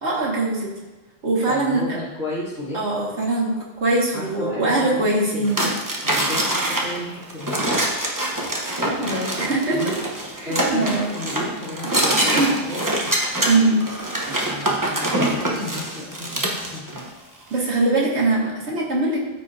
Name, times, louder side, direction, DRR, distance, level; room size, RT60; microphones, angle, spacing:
voice 1, 0.0-0.7 1.2-2.0 2.7-3.5 3.8-5.6 9.5-9.9 10.4-11.1 11.8-11.9 12.3-12.5 13.5-13.8 17.5-19.3, right 2 dB, 90° right, -4 dB, 2.0 m, -21 dB
voice 2, 1.5-2.8 4.1-5.6 5.8-7.8 8.8-9.4 9.7-9.9 10.2-13.1 14.3-17.0, left 2 dB, 65° left, -8 dB, 1.8 m, -33 dB
sound 1, 5.4-17.1, right 1 dB, 20° right, 1.0 m, -24 dB
14.0 x 5.0 x 2.7 m, 1.2 s
omnidirectional pair, 1.1 m